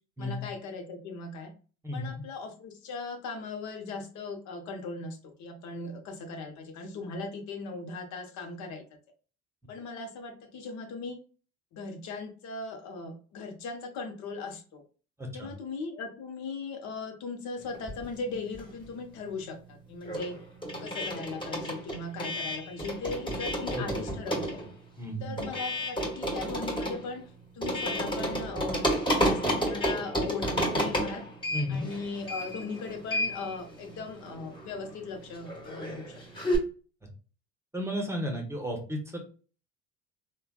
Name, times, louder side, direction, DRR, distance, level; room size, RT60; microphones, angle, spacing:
voice 1, 0.2-1.5 1.9-8.8 9.7-11.2 11.7-14.8 15.3-20.4 20.8-24.6 25.2-27.2 27.5-31.2 31.7-36.2, left 4 dB, 70° left, 4 dB, 0.7 m, -38 dB
voice 2, 1.8-2.2 15.2-15.5 23.7-24.0 25.0-25.5 31.5-31.9 37.7-39.2, equal, 10° right, 2 dB, 0.8 m, -33 dB
sound 1, 17.7-19.0 19.3-36.6, equal, 15° left, 1.3 m, -32 dB
3.2 x 2.2 x 2.3 m, 0.38 s
supercardioid pair, 85°, 30 cm